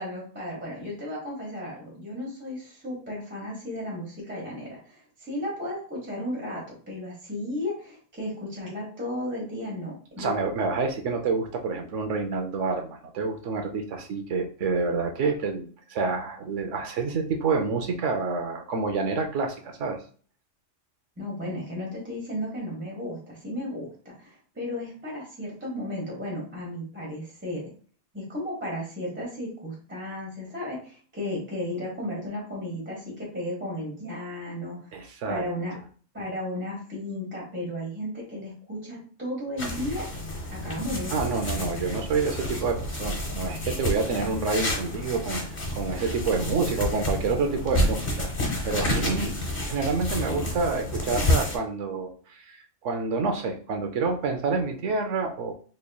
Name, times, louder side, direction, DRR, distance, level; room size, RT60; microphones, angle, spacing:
voice 1, 0.0-10.3 21.2-27.7 28.1-35.0 35.3-35.7 36.1-40.1 40.5-41.3, left 1 dB, 10° right, -4 dB, 1.2 m, -34 dB
voice 2, 10.2-20.0 34.9-35.4 41.1-45.4 45.7-48.3 48.6-49.3 49.6-52.6 52.8-55.5, right 4 dB, 75° right, 4 dB, 1.1 m, -28 dB
sound 1, 39.6-51.6, left 1 dB, 40° left, 1.1 m, -29 dB
4.3 x 3.3 x 2.3 m, 0.42 s
omnidirectional pair, 1.3 m